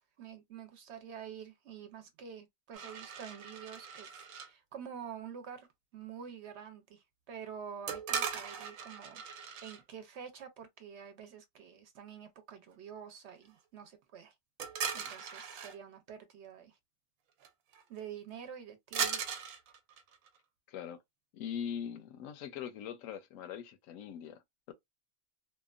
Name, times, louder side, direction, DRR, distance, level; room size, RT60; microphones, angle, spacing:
voice 1, 0.0-5.7 5.9-14.3 14.9-16.8 17.9-19.4, right 7 dB, 65° right, 0.9 m, -48 dB
sound 1, 2.7-4.5 7.9-9.8 14.6-15.8 17.4-17.5 17.7-18.0 18.9-20.4, right 7 dB, 90° right, 1.0 m, -38 dB
voice 2, 20.7-21.0 21.3-24.4 24.7-24.8, left 8 dB, 80° left, 1.0 m, -41 dB
2.8 x 2.2 x 2.3 m
omnidirectional pair, 1.4 m